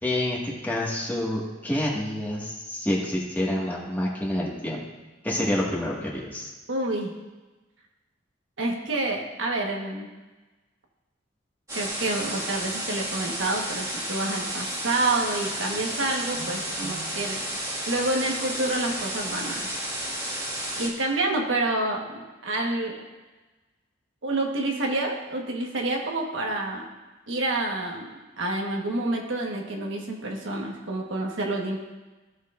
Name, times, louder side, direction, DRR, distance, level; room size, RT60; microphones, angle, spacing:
voice 1, 0.0-4.8 5.2-6.5, left 1 dB, 10° left, -5 dB, 1.8 m, -28 dB
voice 2, 6.7-7.1 8.6-10.1 11.7-17.4 17.9-19.7 20.7-23.0 24.2-26.9 27.3-31.8, right 2 dB, 85° right, 0 dB, 1.4 m, -28 dB
sound 1, 11.7-20.9, right 1 dB, 15° right, 2.0 m, -32 dB
15.5 x 6.5 x 2.6 m, 1.2 s
head